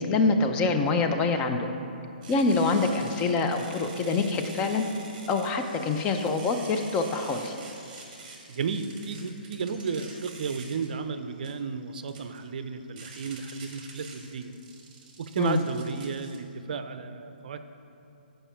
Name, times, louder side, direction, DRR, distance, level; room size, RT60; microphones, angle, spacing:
voice 1, 0.0-1.7 2.3-4.8 5.3-7.5 15.4-15.6, left 3 dB, 20° left, 5 dB, 0.5 m, -25 dB
sound 1, 2.2-16.4, right 3 dB, 40° right, 1.7 m, -47 dB
voice 2, 8.5-14.5 15.2-17.6, right 5 dB, 60° right, 10 dB, 0.5 m, -33 dB
9.0 x 5.4 x 5.6 m, 2.7 s
hypercardioid pair, 155°, 5 cm